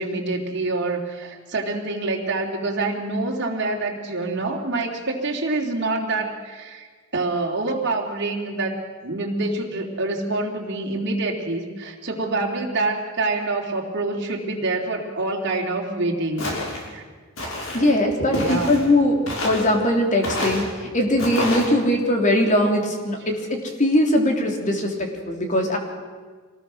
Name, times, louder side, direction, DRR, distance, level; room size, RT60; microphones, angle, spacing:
voice 1, 0.0-6.9 7.1-16.5 16.7-17.0 17.8-17.9 18.4-18.7, right 2 dB, 60° right, -1 dB, 3.3 m, -26 dB
Walk footsteps, 16.4-16.8 17.4-17.8 18.3-18.8 19.3-19.7 20.2-20.6 21.2-21.7, left 1 dB, 85° left, 5.6 m, -27 dB
voice 2, 17.7-19.2 19.4-25.8, left 1 dB, 40° left, 2 dB, 3.4 m, -21 dB
25.5 x 19.5 x 6.4 m, 1.5 s
head